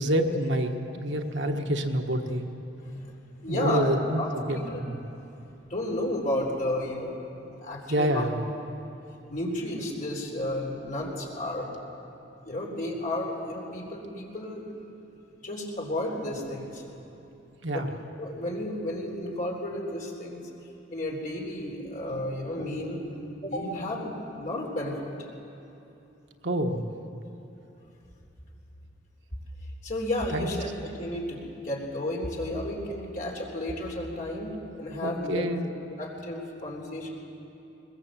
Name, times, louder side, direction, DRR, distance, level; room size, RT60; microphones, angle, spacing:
voice 1, 0.0-2.5 3.5-4.2 4.5-5.0 7.9-8.4 17.6-17.9 26.4-26.9 30.3-30.5 35.0-35.7, right 1 dB, 75° right, 4 dB, 1.4 m, -27 dB
voice 2, 3.4-4.8 5.6-8.3 9.3-11.7 12.4-14.7 15.4-16.8 17.7-17.9 18.2-20.5 20.9-23.0 23.4-25.1 29.8-35.6 36.0-37.1, left 1 dB, 45° left, -1 dB, 3.7 m, -32 dB
22.0 x 20.5 x 7.5 m, 2.9 s
head